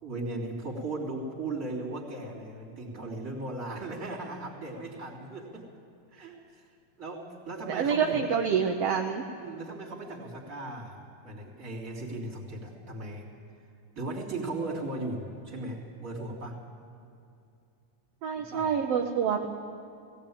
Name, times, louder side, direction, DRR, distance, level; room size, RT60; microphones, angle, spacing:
voice 1, 0.0-5.7 6.1-6.7 7.0-8.3 9.4-13.3 14.0-16.6 18.4-18.7, right 2 dB, 25° right, -2 dB, 3.5 m, -37 dB
voice 2, 7.7-9.2 18.2-19.5, right 7 dB, 65° right, 2 dB, 1.7 m, -27 dB
19.0 x 17.0 x 8.8 m, 2.6 s
omnidirectional pair, 3.7 m